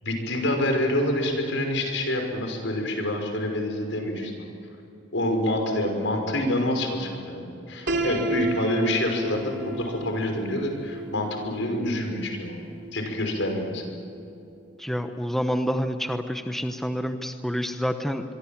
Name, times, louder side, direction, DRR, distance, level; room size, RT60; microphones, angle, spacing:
voice 1, 0.0-4.3 5.1-12.6 12.9-13.8, left 1 dB, 80° left, 4 dB, 5.8 m, -27 dB
Piano, 7.9-13.7, right 2 dB, 60° right, 3.1 m, -33 dB
voice 2, 14.8-18.2, equal, ahead, 6 dB, 0.9 m, -28 dB
26.0 x 23.5 x 7.4 m, 2.7 s
head